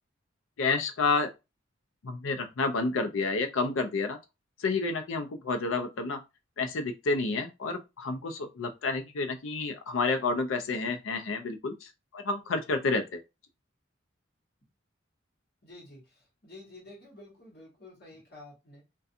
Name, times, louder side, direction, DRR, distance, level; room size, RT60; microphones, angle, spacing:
voice 1, 0.6-1.3 2.0-4.2 4.6-6.2 6.6-13.2, left 3 dB, 90° left, 0.5 m, -30 dB
voice 2, 15.6-18.8, left 2 dB, 55° left, 1.1 m, -50 dB
2.4 x 2.3 x 2.6 m
head